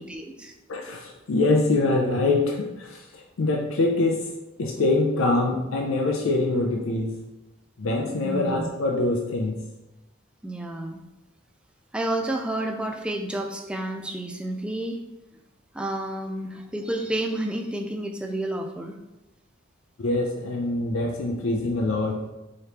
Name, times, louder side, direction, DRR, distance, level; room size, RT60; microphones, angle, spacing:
voice 1, 0.0-0.5 8.2-8.7 10.4-11.0 11.9-15.0 15.7-19.0, right 1 dB, 5° right, 3 dB, 0.3 m, -30 dB
voice 2, 0.7-4.3 4.6-7.1 7.8-9.6 20.0-22.2, left 2 dB, 85° left, 1 dB, 0.5 m, -24 dB
4.9 x 3.1 x 2.9 m, 1.0 s
head